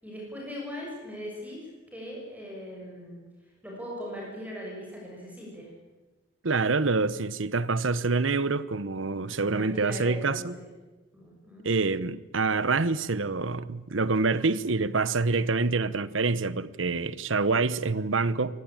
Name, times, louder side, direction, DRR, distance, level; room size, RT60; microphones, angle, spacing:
voice 1, 0.0-1.7 1.9-3.2 3.6-5.7 9.4-10.7 11.1-11.6, equal, 10° right, 6.8 m, -39 dB
voice 2, 6.4-10.6 11.6-18.6, right 3 dB, 80° right, 1.0 m, -26 dB
24.5 x 19.0 x 8.9 m
head